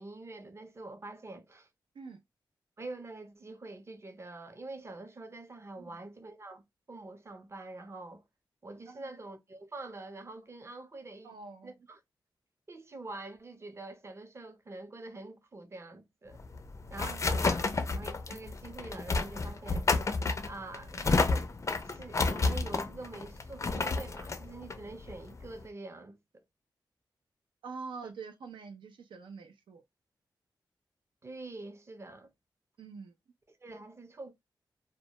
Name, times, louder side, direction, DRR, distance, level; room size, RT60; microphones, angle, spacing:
voice 1, 0.0-1.7 2.8-6.6 6.9-8.2 8.6-11.4 11.6-12.0 12.7-16.4 16.9-19.9 20.5-21.5 21.8-26.2 28.0-28.1 31.2-32.3 33.6-34.3, right 2 dB, 35° right, 0.6 m, -45 dB
voice 2, 11.2-11.7 17.0-17.7 27.6-29.8 32.8-33.1, right 4 dB, 90° right, 0.4 m, -46 dB
sound 1, 16.3-25.6, left 3 dB, 40° left, 0.4 m, -31 dB
2.1 x 2.1 x 2.8 m
cardioid pair, 70°, 8 cm